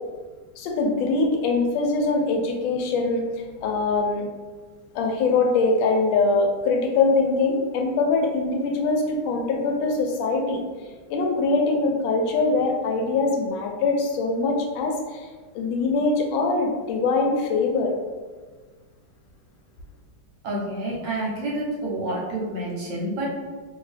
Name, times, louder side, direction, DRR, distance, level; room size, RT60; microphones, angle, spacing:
voice 1, 0.6-4.3 4.9-10.6 11.1-15.3 15.5-17.9, left 3 dB, 75° left, 2 dB, 1.3 m, -23 dB
voice 2, 20.4-23.3, right 1 dB, 65° right, -4 dB, 1.1 m, -28 dB
2.9 x 2.7 x 3.2 m, 1.4 s
omnidirectional pair, 2.3 m